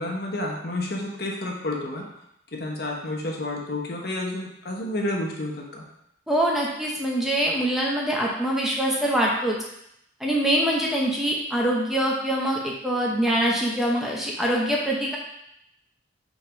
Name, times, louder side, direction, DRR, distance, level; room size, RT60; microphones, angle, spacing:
voice 1, 0.0-2.1 2.5-5.8, left 1 dB, 55° left, -1 dB, 1.0 m, -30 dB
voice 2, 6.3-9.6 10.2-15.2, right 1 dB, ahead, -3 dB, 0.7 m, -24 dB
5.2 x 3.8 x 5.1 m, 0.78 s
head